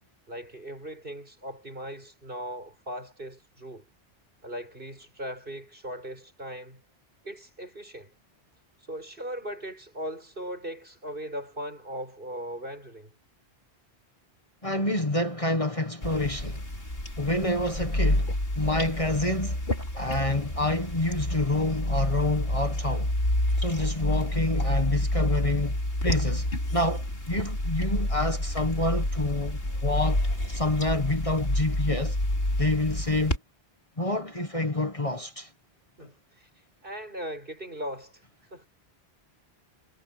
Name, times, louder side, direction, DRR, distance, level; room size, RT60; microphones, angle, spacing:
voice 1, 0.3-3.9 4.4-6.8 7.2-8.1 8.9-13.1 36.0-36.5 36.8-38.2 38.5-38.7, equal, 55° right, 7.5 m, -38 dB
voice 2, 14.6-16.6 17.2-19.6 19.9-23.1 23.6-30.2 30.5-32.2 32.6-33.4 34.0-35.5 36.0-36.1, left 2 dB, 30° left, 1.6 m, -28 dB
sound 1, 16.0-33.4, left 1 dB, 60° left, 5.5 m, -28 dB
omnidirectional pair, 1.1 m